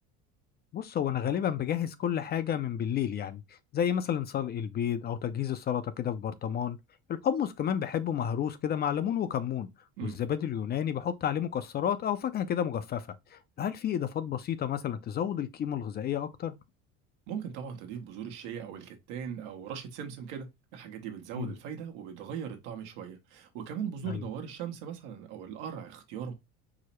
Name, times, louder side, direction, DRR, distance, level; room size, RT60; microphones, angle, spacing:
voice 1, 0.7-6.8 7.1-9.7 10.0-16.5 21.4-21.5 24.1-24.2, left 9 dB, 30° left, 0.4 m, -31 dB
voice 2, 17.3-26.3, right 8 dB, 85° right, 1.2 m, -39 dB
4.7 x 2.0 x 4.3 m
supercardioid pair, 120°, 34 cm